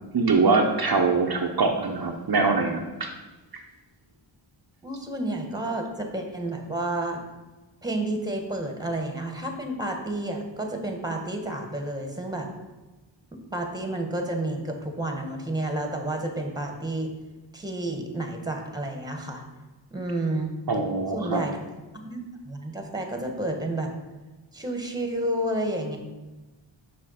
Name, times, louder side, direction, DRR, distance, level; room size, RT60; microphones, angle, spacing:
voice 1, 0.1-3.1 20.7-21.4, right 4 dB, 55° right, 2 dB, 0.9 m, -23 dB
voice 2, 4.8-7.2 7.8-12.5 13.5-17.1 17.5-19.4 19.9-20.5 21.1-21.6 21.9-23.9 24.5-26.0, right 1 dB, 10° right, 3 dB, 1.4 m, -30 dB
6.5 x 6.0 x 5.7 m, 1.2 s
wide cardioid pair, 85°, 45 cm